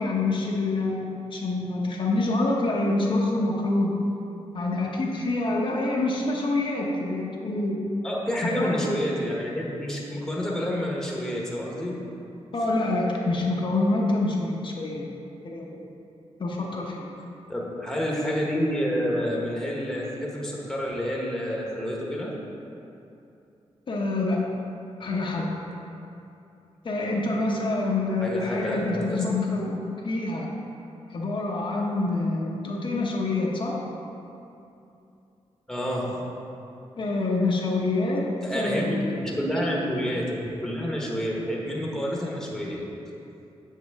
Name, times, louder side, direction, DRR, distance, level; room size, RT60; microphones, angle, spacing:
voice 1, 0.0-3.9 4.5-7.8 8.4-9.0 12.5-15.0 15.4-15.9 16.4-17.0 23.9-24.4 25.0-25.5 26.8-29.8 30.0-30.5 31.1-33.8 37.0-38.3 38.5-39.2, left 2 dB, 50° left, -2 dB, 0.9 m, -26 dB
voice 2, 8.0-12.0 17.5-22.3 28.2-29.2 35.7-36.2 38.4-39.0 39.4-42.9, equal, 5° left, -3 dB, 1.1 m, -29 dB
7.5 x 7.2 x 3.5 m, 2.8 s
wide cardioid pair, 135°, 11 cm